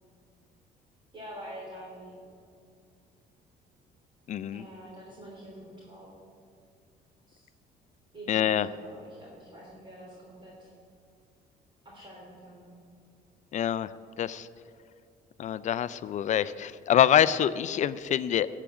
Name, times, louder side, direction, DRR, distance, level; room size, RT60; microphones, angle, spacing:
voice 1, 1.1-2.1 4.5-6.1 7.3-7.5 8.1-10.7 11.8-12.7, right 1 dB, 30° right, -5 dB, 3.3 m, -46 dB
voice 2, 4.3-4.6 8.3-8.7 13.5-13.9 14.2-14.5 15.4-18.5, left 10 dB, 45° left, 16 dB, 0.4 m, -25 dB
14.5 x 5.0 x 8.9 m, 2.4 s
cardioid pair, 110°, 17 cm